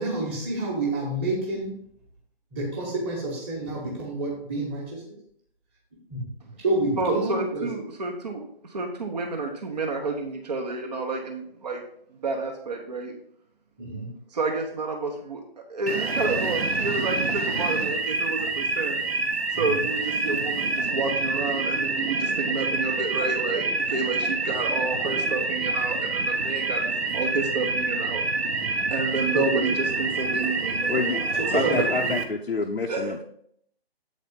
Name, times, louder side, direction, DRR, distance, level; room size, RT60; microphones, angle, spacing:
voice 1, 0.0-1.7 2.5-5.0 6.1-6.2 6.6-7.7 13.8-14.1 19.5-19.8 28.8-28.9 29.3-29.4 31.4-32.1, right 2 dB, 15° right, -3 dB, 1.3 m, -29 dB
voice 2, 7.0-11.8 12.2-13.1 14.3-15.4 15.7-19.0 19.5-26.8 27.1-28.3 28.9-31.2 31.5-31.9 32.9-33.1, right 3 dB, 40° right, 1 dB, 0.9 m, -29 dB
sound 1, 15.9-32.2, right 3 dB, 80° right, 1.1 m, -27 dB
voice 3, 30.9-33.2, left 4 dB, 70° left, 2 dB, 0.7 m, -28 dB
7.9 x 4.2 x 5.2 m, 0.68 s
figure-of-eight pair, 150°, 31 cm